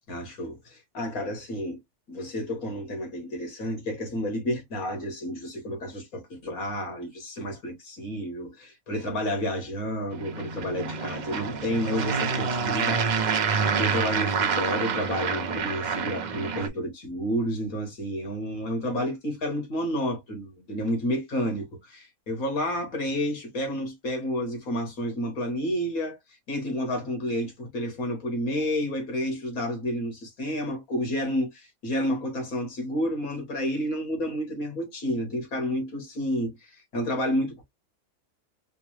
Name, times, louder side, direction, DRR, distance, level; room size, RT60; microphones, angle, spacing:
voice 1, 0.1-1.8 2.1-26.2 26.5-37.6, equal, 70° left, 2.3 m, -30 dB
sound 1, 10.1-16.7, right 5 dB, 65° right, 0.4 m, -27 dB
5.1 x 2.1 x 3.2 m
omnidirectional pair, 1.5 m